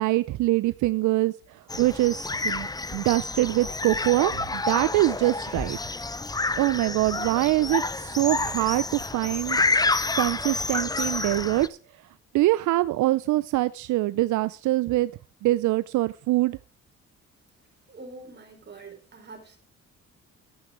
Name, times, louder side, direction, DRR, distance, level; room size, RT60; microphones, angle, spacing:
voice 1, 0.0-5.8 6.6-9.6 10.2-11.8 12.3-15.1 15.4-16.6, right 17 dB, 75° right, 16 dB, 0.5 m, -24 dB
sound 1, 1.7-11.7, left 3 dB, 15° left, 0.6 m, -29 dB
voice 2, 17.9-19.6, right 3 dB, 35° right, 3 dB, 4.4 m, -45 dB
12.0 x 8.6 x 5.0 m, 0.41 s
cardioid pair, 90°, 30 cm